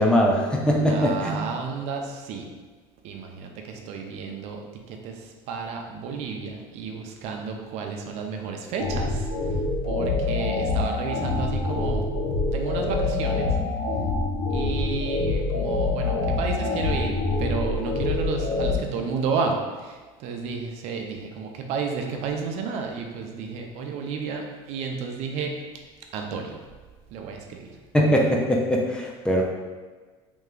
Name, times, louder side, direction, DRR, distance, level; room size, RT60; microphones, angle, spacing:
voice 1, 0.0-1.4 27.9-29.4, equal, 5° left, -2 dB, 0.4 m, -21 dB
voice 2, 0.9-2.5 3.0-4.6 4.9-9.3 9.8-12.1 12.5-13.5 14.5-25.5 26.1-26.6 27.1-27.8, right 5 dB, 60° right, 2 dB, 0.6 m, -32 dB
sound 1, 8.8-18.8, left 3 dB, 85° left, 1.2 m, -26 dB
3.2 x 3.0 x 3.7 m, 1.4 s
cardioid pair, 145°, 13 cm